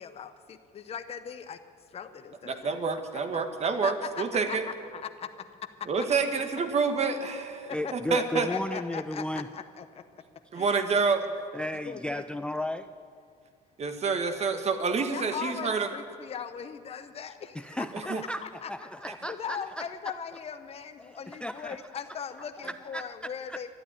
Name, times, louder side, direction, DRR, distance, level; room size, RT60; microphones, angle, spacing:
voice 1, 0.0-1.6 1.9-2.8 3.1-3.4 3.8-5.5 5.8-5.9 7.6-10.0 10.5-10.8 11.8-12.2 15.1-17.9 18.2-18.9 19.3-23.7, left 7 dB, 35° left, 8 dB, 0.8 m, -39 dB
voice 2, 2.5-4.7 5.9-8.5 10.5-11.2 13.8-15.9 17.9-18.2, right 5 dB, 40° right, 8 dB, 1.4 m, -28 dB
voice 3, 7.7-9.5 11.5-12.9 17.6-18.4 18.7-19.6 21.0-21.8 22.6-23.1 23.5-23.6, left 1 dB, 5° left, 11 dB, 0.4 m, -34 dB
12.5 x 12.0 x 9.6 m, 2.2 s
cardioid pair, 110°, 17 cm